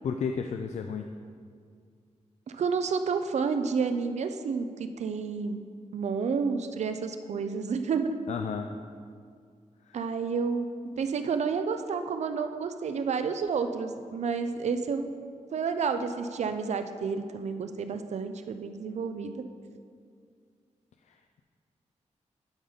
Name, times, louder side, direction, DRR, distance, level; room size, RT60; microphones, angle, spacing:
voice 1, 0.0-1.1 8.3-8.7 9.9-10.0 21.1-21.4, left 6 dB, 65° left, 6 dB, 0.4 m, -33 dB
voice 2, 2.5-5.6 5.9-8.2 9.9-10.7 11.0-15.1 15.5-19.4, right 5 dB, 65° right, 8 dB, 0.5 m, -30 dB
11.5 x 4.0 x 5.1 m, 2.1 s
wide cardioid pair, 175°, 13 cm